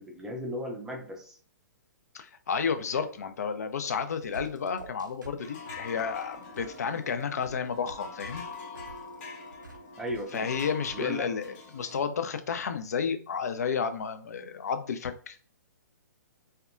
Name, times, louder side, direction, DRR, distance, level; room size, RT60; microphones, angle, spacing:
voice 1, 0.0-1.4 2.9-3.1 10.0-10.5 10.9-11.3, equal, 5° right, 1 dB, 0.4 m, -36 dB
voice 2, 2.1-8.4 10.3-15.4, left 6 dB, 60° left, 9 dB, 0.4 m, -31 dB
sound 1, 3.9-10.9, right 4 dB, 85° right, 0.5 m, -49 dB
sound 2, 5.4-12.0, left 4 dB, 40° left, 0.7 m, -44 dB
2.7 x 2.2 x 2.3 m, 0.41 s
figure-of-eight pair, 120°, 10 cm